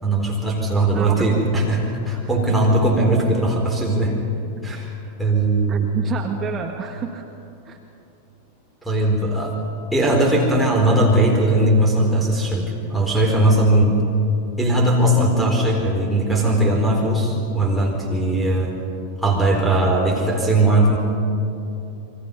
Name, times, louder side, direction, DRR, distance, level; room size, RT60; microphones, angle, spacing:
voice 1, 0.0-4.2 4.6-5.9 8.8-9.6 9.9-14.0 14.6-18.7 19.2-21.0, right 1 dB, 5° right, -3 dB, 4.5 m, -19 dB
voice 2, 0.9-1.2 4.5-4.6 5.7-7.2 7.7-7.8, right 7 dB, 25° right, 3 dB, 1.8 m, -29 dB
29.0 x 23.5 x 5.6 m, 2.8 s
figure-of-eight pair, 90°, 0 cm